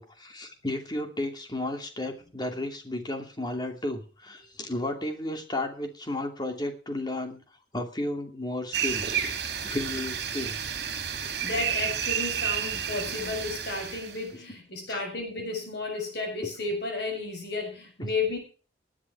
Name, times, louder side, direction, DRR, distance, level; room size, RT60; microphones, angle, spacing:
voice 1, 0.0-7.4 7.7-9.3 9.6-10.8 11.2-11.6 14.9-15.0 18.0-18.1, left 1 dB, 25° left, 5 dB, 2.7 m, -33 dB
sound 1, 8.7-14.2, right 8 dB, 60° right, 2.8 m, -31 dB
voice 2, 11.2-18.4, left 3 dB, 65° left, 3 dB, 7.1 m, -33 dB
19.5 x 10.0 x 4.7 m, 0.37 s
head